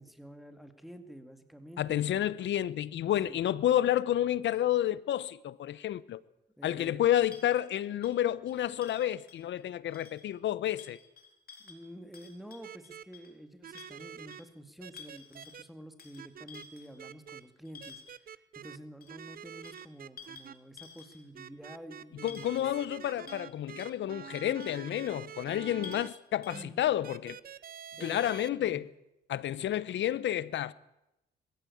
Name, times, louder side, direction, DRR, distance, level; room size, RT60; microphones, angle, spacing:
voice 1, 0.0-2.3 3.2-3.4 6.6-7.1 11.6-18.0 18.3-22.7 25.8-26.0 26.5-26.8 28.0-28.2 28.6-28.9, equal, ahead, 2.3 m, -49 dB
voice 2, 1.8-6.2 6.6-11.0 22.2-27.4 28.0-28.9 29.3-30.7, left 12 dB, 70° left, 0.9 m, -30 dB
sound 1, 7.3-9.6 9.9-10.3 10.8-13.3 13.7-14.5 14.8-15.6 16.0-18.2 19.0-21.4 21.7-21.8 22.3-22.9 23.3-23.5 23.8-23.9 24.3-25.1 25.5-25.6 25.8-26.2 26.4-26.7, left 6 dB, 50° left, 4.1 m, -52 dB
sound 2, 12.6-13.0 13.6-14.4 14.8-15.6 16.2-16.6 17.0-17.4 17.8-18.8 19.1-20.5 21.4-26.1 26.5-26.6 27.0-28.5, right 9 dB, 45° right, 0.8 m, -46 dB
21.5 x 15.0 x 8.6 m
cardioid pair, 90°, 20 cm